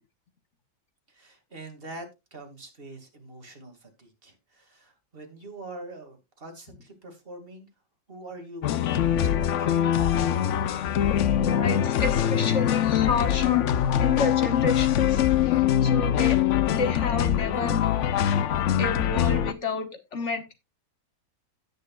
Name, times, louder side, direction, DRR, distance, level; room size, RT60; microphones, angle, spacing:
voice 1, 1.1-7.7 8.1-9.8, right 2 dB, 30° right, 2.4 m, -44 dB
sound 1, 8.6-19.5, left 10 dB, 65° left, 0.7 m, -23 dB
voice 2, 11.4-13.6 14.0-15.2 15.5-16.4 16.7-18.1 18.8-20.5, left 3 dB, 45° left, 1.5 m, -30 dB
17.0 x 6.6 x 2.4 m
omnidirectional pair, 1.9 m